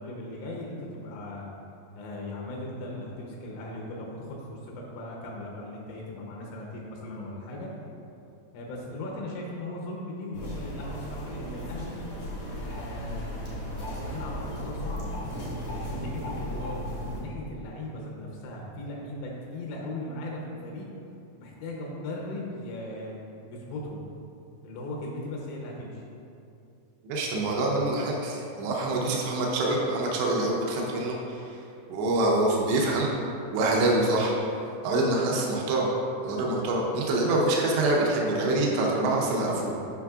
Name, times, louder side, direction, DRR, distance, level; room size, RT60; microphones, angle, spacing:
voice 1, 0.0-1.5 2.0-7.7 8.5-12.0 12.6-13.4 14.0-15.2 15.7-20.9 21.4-23.2 23.5-24.0 24.6-26.0, left 1 dB, 85° left, -2 dB, 3.4 m, -38 dB
sound 1, 10.3-17.2, equal, 65° left, 1.6 m, -35 dB
voice 2, 27.0-31.6 31.9-33.1 33.5-34.4 34.8-35.9 36.2-39.7, right 2 dB, 80° right, -2 dB, 2.6 m, -25 dB
9.3 x 6.0 x 2.4 m, 2.7 s
omnidirectional pair, 5.8 m